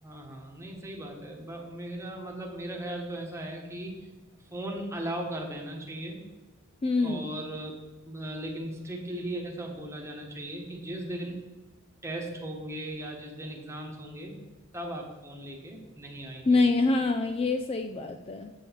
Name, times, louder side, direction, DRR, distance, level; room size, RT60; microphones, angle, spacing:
voice 1, 0.0-4.1 4.5-6.2 7.0-7.7 8.1-11.5 12.0-14.4 14.7-16.6, right 1 dB, 15° right, 0 dB, 1.3 m, -37 dB
voice 2, 6.8-7.3 16.5-18.5, left 3 dB, 25° left, 7 dB, 0.3 m, -25 dB
7.9 x 6.2 x 4.6 m, 1.2 s
head